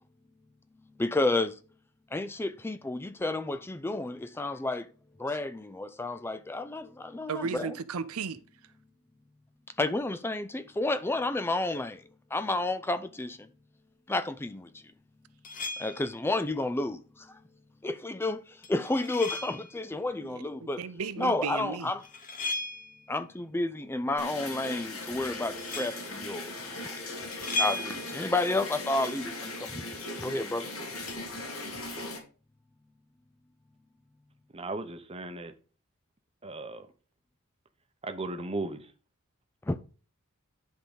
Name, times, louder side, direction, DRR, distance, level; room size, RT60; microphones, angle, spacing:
voice 1, 1.0-1.5 2.1-4.9 5.2-7.7 9.8-12.0 12.3-13.4 14.1-14.7 15.8-17.3 17.8-20.8 21.2-22.0 23.1-26.5 26.8-27.0 27.5-29.9 30.2-30.7 39.7-39.8, left 2 dB, 10° left, 0.3 m, -31 dB
voice 2, 7.3-8.4 20.2-21.9, right 5 dB, 75° right, 0.6 m, -35 dB
sound 1, 15.4-16.2 18.6-19.8 21.8-23.1 25.6-26.1 27.3-28.3 31.1-31.2, left 2 dB, 40° left, 1.4 m, -35 dB
sound 2, 24.2-32.2, left 2 dB, 70° left, 3.2 m, -39 dB
voice 3, 34.5-35.5 36.4-36.9 38.0-38.8, right 2 dB, 25° right, 0.8 m, -36 dB
10.5 x 3.8 x 5.2 m
head